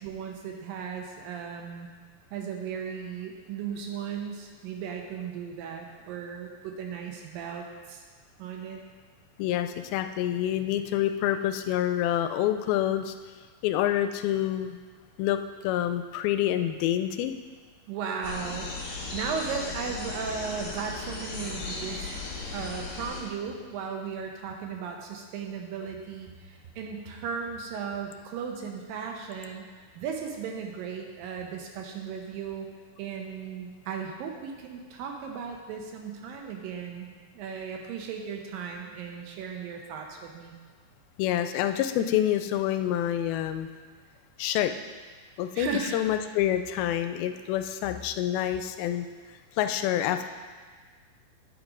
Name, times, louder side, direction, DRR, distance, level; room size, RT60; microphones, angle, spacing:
voice 1, 0.0-1.9 2.3-8.0 8.4-8.8 17.9-22.3 22.5-32.7 33.0-40.6 45.6-46.0, right 6 dB, 75° right, 2 dB, 2.5 m, -36 dB
voice 2, 9.4-13.2 13.6-14.8 15.2-17.3 41.2-43.7 44.4-44.7 45.4-49.1 49.6-50.3, left 11 dB, 90° left, 8 dB, 2.4 m, -27 dB
sound 1, 18.2-23.2, left 3 dB, 55° left, 2.5 m, -36 dB
9.4 x 5.3 x 4.9 m, 1.5 s
omnidirectional pair, 4.2 m